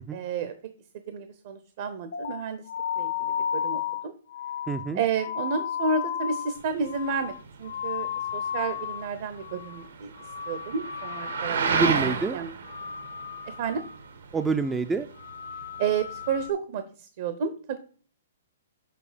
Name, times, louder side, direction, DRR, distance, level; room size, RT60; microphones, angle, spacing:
voice 1, 0.1-0.5 1.1-2.6 3.0-4.1 4.9-10.1 10.5-11.9 12.3-12.5 13.5-13.8 15.8-17.8, right 5 dB, 50° right, 10 dB, 0.7 m, -31 dB
sound 1, 2.1-9.1 9.4-9.9 10.1-11.6 11.9-12.3 12.6-14.1 14.4-14.8 15.1-16.5, left 9 dB, 70° left, 0.8 m, -34 dB
voice 2, 4.7-5.0 11.7-12.4 14.3-15.1, right 4 dB, 10° right, 9 dB, 0.3 m, -26 dB
sound 2, 6.6-16.5, right 5 dB, 80° right, 1.3 m, -33 dB
6.8 x 4.9 x 5.0 m, 0.42 s
hypercardioid pair, 150°, 0 cm